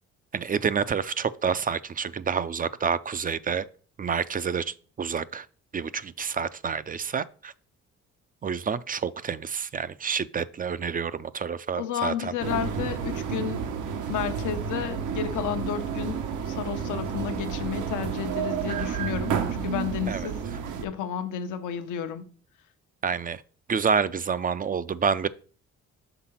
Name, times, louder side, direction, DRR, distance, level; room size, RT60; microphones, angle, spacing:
voice 1, 0.3-3.7 4.0-5.5 5.7-7.5 8.4-12.3 18.7-18.8 20.1-20.3 23.0-23.4 23.7-25.3, right 6 dB, 30° right, 0.3 m, -28 dB
voice 2, 11.8-13.6 14.1-16.2 16.5-20.4 20.8-22.2, left 9 dB, 90° left, 0.9 m, -32 dB
sound 1, 12.4-20.8, right 7 dB, 85° right, 0.9 m, -31 dB
5.9 x 3.8 x 5.7 m
cardioid pair, 90°, 30 cm